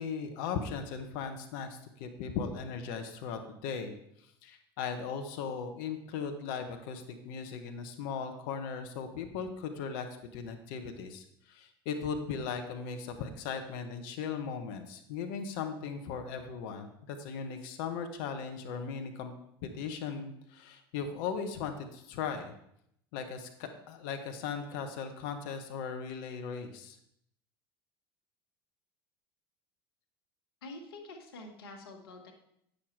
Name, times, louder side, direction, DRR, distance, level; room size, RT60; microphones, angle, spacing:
voice 1, 0.0-3.9 4.4-10.1 10.3-19.3 19.6-22.6 23.1-27.0, left 6 dB, 70° left, 6 dB, 1.1 m, -38 dB
voice 2, 30.6-32.3, left 2 dB, 85° left, 2 dB, 1.5 m, -47 dB
8.6 x 6.5 x 4.6 m, 0.74 s
hypercardioid pair, 80°, 12 cm